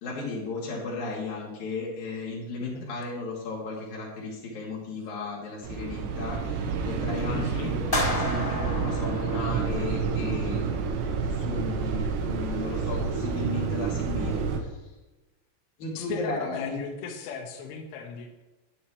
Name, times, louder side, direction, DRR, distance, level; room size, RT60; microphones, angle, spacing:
voice 1, 0.0-14.7 15.8-16.8, left 3 dB, 45° left, -4 dB, 3.2 m, -35 dB
sound 1, 5.6-14.6, right 5 dB, 75° right, 2.8 m, -29 dB
voice 2, 7.3-7.8 16.0-18.3, left 5 dB, 75° left, 3 dB, 3.5 m, -36 dB
sound 2, 7.9-10.2, left 2 dB, 15° left, 2.6 m, -31 dB
10.5 x 10.0 x 3.2 m, 1.1 s
omnidirectional pair, 5.8 m